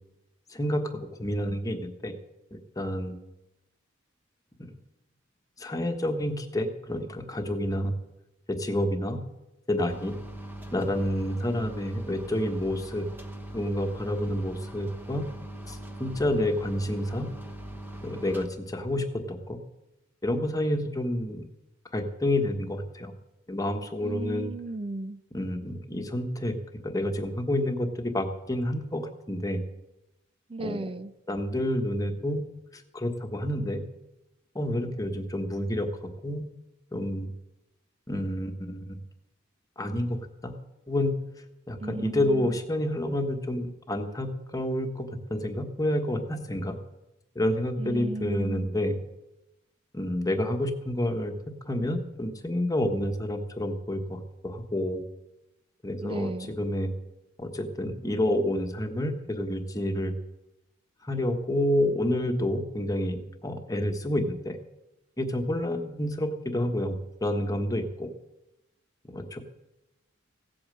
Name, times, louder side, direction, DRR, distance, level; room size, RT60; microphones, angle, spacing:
voice 1, 0.5-2.1 2.5-3.1 4.6-4.7 5.6-7.9 8.5-9.2 9.7-10.1 10.7-13.0 13.5-15.3 15.7-17.3 18.0-19.6 20.2-21.5 21.9-23.1 23.5-24.5 25.3-26.6 26.8-29.6 30.6-30.8 31.3-32.4 32.7-33.8 34.5-35.9 36.2-36.4 36.9-37.3 38.1-39.0 39.8-40.2 40.4-40.5 40.9-41.1 41.7-46.8 47.3-49.0 49.9-51.3 51.7-55.0 55.8-56.9 57.4-60.1 61.0-64.6 65.2-66.9 67.2-68.1 69.0-69.4, left 1 dB, 15° left, 4 dB, 1.3 m, -29 dB
sound 1, 9.9-18.5, right 1 dB, 10° right, 1.1 m, -41 dB
voice 2, 24.0-25.2 30.5-31.1 41.8-42.6 47.8-48.7 56.0-56.5, right 2 dB, 25° right, 14 dB, 0.5 m, -35 dB
16.5 x 8.7 x 7.7 m, 0.95 s
head